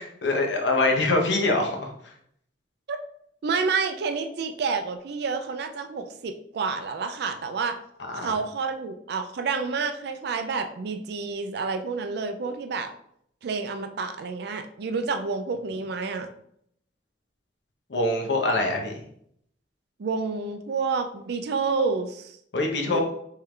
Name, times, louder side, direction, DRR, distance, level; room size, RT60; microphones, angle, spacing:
voice 1, 0.0-1.9 8.1-8.4 17.9-19.0 22.5-23.0, left 2 dB, 80° left, 2 dB, 0.9 m, -24 dB
voice 2, 3.4-7.8 8.1-12.9 13.4-16.3 20.0-22.4 22.9-23.0, right 4 dB, 65° right, 7 dB, 0.4 m, -29 dB
3.7 x 3.2 x 3.2 m, 0.69 s
head